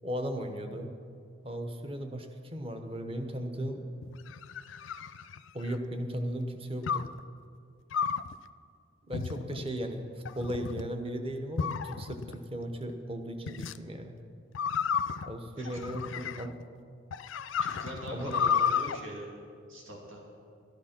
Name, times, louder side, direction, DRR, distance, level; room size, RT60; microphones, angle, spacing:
voice 1, 0.0-0.9 1.4-3.8 5.5-7.0 9.1-14.1 15.2-16.6 18.1-18.3, equal, 30° right, 6 dB, 0.9 m, -36 dB
sound 1, 4.0-5.9 6.9-7.2 7.9-8.3 9.1-9.7 10.3-10.9 11.6-12.4 13.5-13.8 14.6-16.6 17.1-19.0, left 7 dB, 75° left, 0.4 m, -32 dB
voice 2, 17.6-19.3 19.7-20.2, right 1 dB, 85° right, -2 dB, 2.4 m, -41 dB
13.0 x 10.5 x 5.8 m, 2.3 s
head